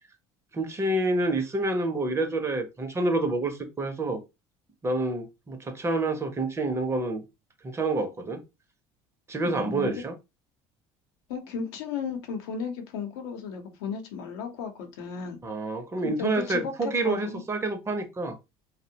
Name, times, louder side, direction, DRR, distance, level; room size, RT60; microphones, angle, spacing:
voice 1, 0.5-4.2 4.8-7.2 7.6-8.4 9.3-10.1 15.4-18.4, right 2 dB, 20° right, 0.6 m, -28 dB
voice 2, 9.4-9.9 11.3-15.4 16.0-17.4, left 6 dB, 90° left, 0.7 m, -34 dB
2.6 x 2.1 x 2.8 m
supercardioid pair, 95°, 12 cm